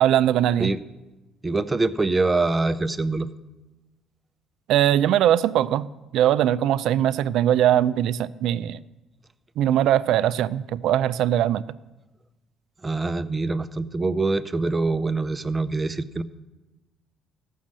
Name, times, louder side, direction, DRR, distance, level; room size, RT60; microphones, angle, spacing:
voice 1, 0.0-0.7 4.7-8.8 9.6-11.6, right 11 dB, 70° right, 16 dB, 0.4 m, -21 dB
voice 2, 1.4-3.3 12.8-16.2, right 3 dB, 15° right, 12 dB, 0.5 m, -24 dB
14.5 x 6.3 x 7.4 m, 1.1 s
cardioid pair, 130°, 0 cm